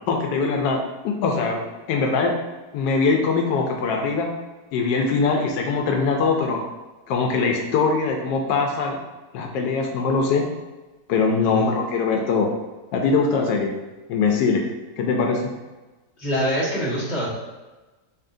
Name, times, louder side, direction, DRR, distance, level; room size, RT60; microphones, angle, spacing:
voice 1, 0.1-1.6 1.9-2.3 2.7-4.3 4.7-6.6 7.1-9.0 9.3-10.4 11.1-12.5 12.9-13.7 14.1-14.6 15.0-15.5, left 4 dB, 90° left, 2 dB, 1.3 m, -22 dB
voice 2, 16.2-17.3, equal, 40° left, -8 dB, 1.7 m, -25 dB
7.0 x 2.7 x 2.6 m, 1.2 s
omnidirectional pair, 1.9 m